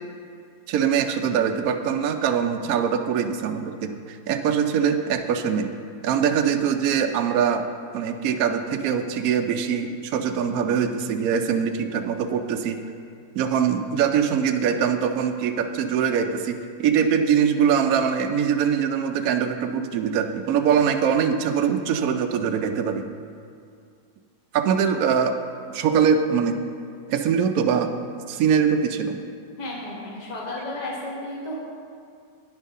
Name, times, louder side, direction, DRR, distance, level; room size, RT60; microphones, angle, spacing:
voice 1, 0.7-5.7 6.0-7.6 7.9-12.8 13.4-23.0 24.5-25.4 25.7-26.5 27.1-27.9 28.3-29.1, right 7 dB, 75° right, 6 dB, 0.8 m, -23 dB
voice 2, 29.6-31.6, left 1 dB, 25° left, -4 dB, 1.6 m, -33 dB
10.5 x 9.8 x 3.7 m, 2.3 s
omnidirectional pair, 2.0 m